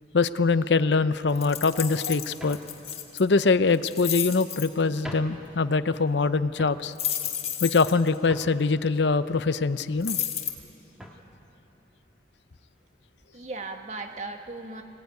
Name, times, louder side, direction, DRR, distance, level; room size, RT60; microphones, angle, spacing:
voice 1, 0.1-2.6 3.2-6.9 7.6-10.2, left 4 dB, 75° left, 14 dB, 0.6 m, -23 dB
sound 1, 1.0-1.1 1.8-1.9 2.4-2.8 3.7-4.3 4.8-4.9 5.0-5.5 5.9-6.2 6.5-6.9 7.5-8.8 9.3-10.2 10.5-10.7 10.9-11.3 12.1-12.2 12.5-12.7 14.0-14.2, equal, 5° right, 1.9 m, -45 dB
sound 2, 1.3-3.2 3.7-4.7 6.9-8.1 10.0-10.5, left 10 dB, 35° left, 1.6 m, -31 dB
voice 2, 1.7-2.1 13.3-14.8, right 3 dB, 40° right, 4 dB, 1.5 m, -38 dB
25.5 x 18.0 x 9.3 m, 2.9 s
head